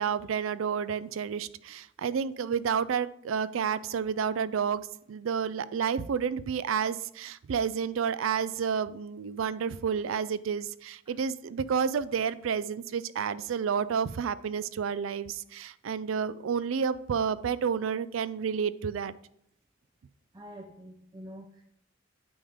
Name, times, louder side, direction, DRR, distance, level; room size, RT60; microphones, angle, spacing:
voice 1, 0.0-19.1, right 7 dB, 80° right, 17 dB, 0.4 m, -30 dB
voice 2, 20.3-21.6, equal, 20° right, 4 dB, 0.5 m, -46 dB
8.7 x 5.0 x 3.6 m, 0.72 s
head